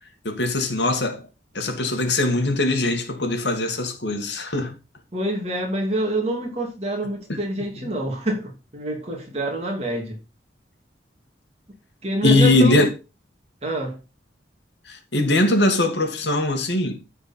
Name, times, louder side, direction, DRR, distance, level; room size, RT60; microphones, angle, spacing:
voice 1, 0.2-1.3 1.5-4.7 7.3-7.4 12.2-12.9 14.9-17.0, left 2 dB, 70° left, 1.9 m, -21 dB
voice 2, 5.1-10.2 12.0-12.8 13.6-14.0, right 1 dB, 35° right, 2.9 m, -26 dB
14.0 x 4.6 x 4.4 m
head